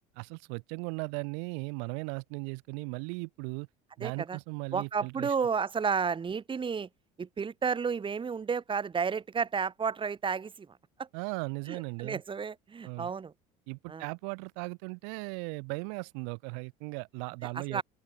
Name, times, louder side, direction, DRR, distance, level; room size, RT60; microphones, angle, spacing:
voice 1, 0.2-3.7 4.0-5.4 11.1-12.2 12.8-13.1 13.7-17.8, right 40 dB or more, 75° right, 0.6 m, -37 dB
voice 2, 4.0-4.4 4.7-6.9 7.2-10.7 11.0-11.1 11.7-13.3 13.9-14.0 17.7-17.8, right 6 dB, 25° right, 1.8 m, -32 dB
open air
supercardioid pair, 95°, 19 cm